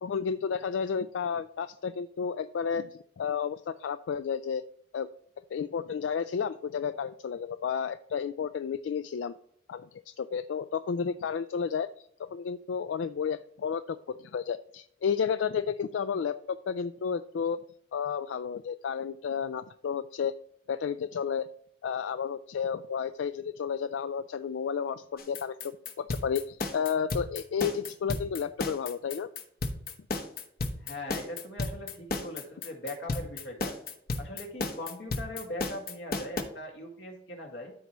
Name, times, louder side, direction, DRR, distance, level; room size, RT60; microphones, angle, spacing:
voice 1, 0.0-4.6 4.9-5.1 5.5-9.3 9.7-17.6 17.9-20.3 20.7-21.5 21.8-29.3, left 7 dB, 90° left, 12 dB, 0.3 m, -32 dB
sound 1, 25.2-36.4, left 2 dB, 55° left, 1.0 m, -33 dB
voice 2, 30.8-33.8 34.2-37.7, left 1 dB, 70° left, 1 dB, 2.0 m, -40 dB
13.0 x 4.6 x 3.0 m, 0.69 s
head